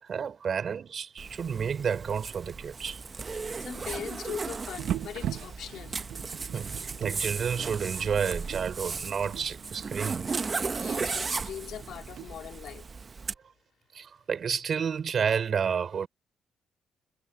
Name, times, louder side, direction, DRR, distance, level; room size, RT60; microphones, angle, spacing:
voice 1, 0.0-3.0 4.0-4.1 6.5-10.3 13.9-16.1, right 7 dB, 50° right, 5.4 m, -30 dB
Zipper (clothing), 1.2-13.3, right 4 dB, 35° right, 0.9 m, -36 dB
voice 2, 3.6-6.0 10.7-12.8, left 10 dB, 70° left, 2.9 m, -41 dB
sound 1, 4.8-12.3, right 10 dB, 75° right, 1.4 m, -40 dB
cardioid pair, 90°, 0 cm